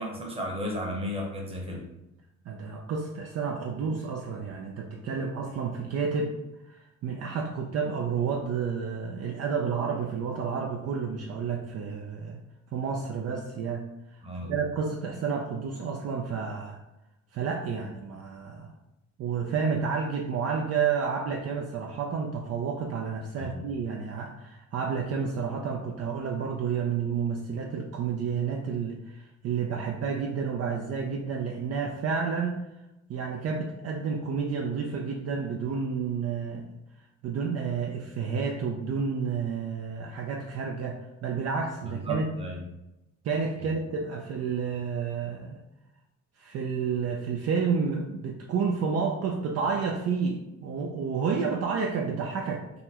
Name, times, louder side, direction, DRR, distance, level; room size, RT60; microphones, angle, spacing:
voice 1, 0.0-1.8 14.2-14.5 23.4-23.6 41.8-42.6 43.6-43.7, equal, 20° right, -1 dB, 0.9 m, -34 dB
voice 2, 2.5-6.3 6.7-12.4 12.7-16.8 17.3-18.7 19.2-32.6 33.1-36.7 37.2-42.3 43.2-45.6 46.4-52.7, right 5 dB, 55° right, 1 dB, 0.4 m, -30 dB
3.8 x 2.1 x 2.8 m, 0.93 s
cardioid pair, 90°, 30 cm